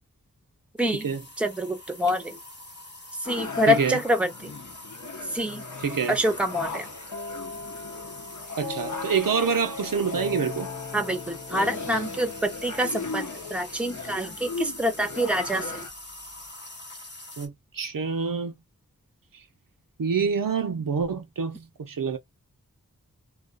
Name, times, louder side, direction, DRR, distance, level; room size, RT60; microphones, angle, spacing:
sound 1, 0.8-17.5, left 1 dB, 30° left, 0.9 m, -44 dB
voice 1, 0.8-1.1 1.4-2.4 3.2-4.5 5.3-5.6 6.1-6.9 10.9-15.9, equal, 5° right, 0.6 m, -26 dB
sound 2, 3.2-15.9, left 4 dB, 60° left, 0.7 m, -39 dB
voice 2, 3.7-4.0 5.8-6.1 8.6-10.7 17.4-18.5 20.0-22.2, right 6 dB, 75° right, 0.6 m, -26 dB
sound 3, 7.1-14.8, left 4 dB, 85° left, 1.1 m, -39 dB
2.3 x 2.3 x 2.3 m
wide cardioid pair, 40°, 33 cm